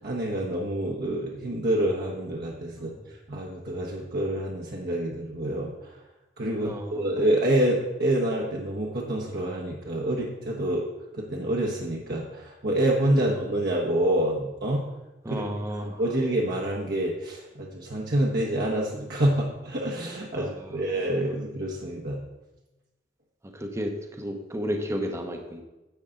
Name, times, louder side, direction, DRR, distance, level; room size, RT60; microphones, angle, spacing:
voice 1, 0.0-6.0 6.4-10.9 11.1-14.8 15.3-15.4 15.7-22.2, right 1 dB, 60° right, -2 dB, 1.2 m, -27 dB
voice 2, 6.6-7.1 15.2-16.0 20.3-20.5 23.5-25.6, equal, 15° right, 3 dB, 0.9 m, -32 dB
10.0 x 8.0 x 3.8 m, 1.0 s
head